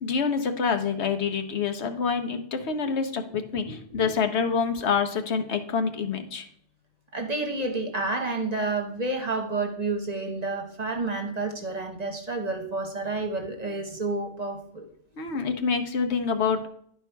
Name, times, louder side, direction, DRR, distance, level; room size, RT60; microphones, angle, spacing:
voice 1, 0.0-6.5 15.2-16.7, left 5 dB, 75° left, 6 dB, 1.1 m, -27 dB
voice 2, 7.1-14.8, right 3 dB, 40° right, 3 dB, 1.1 m, -30 dB
11.0 x 4.5 x 4.5 m, 0.66 s
omnidirectional pair, 1.2 m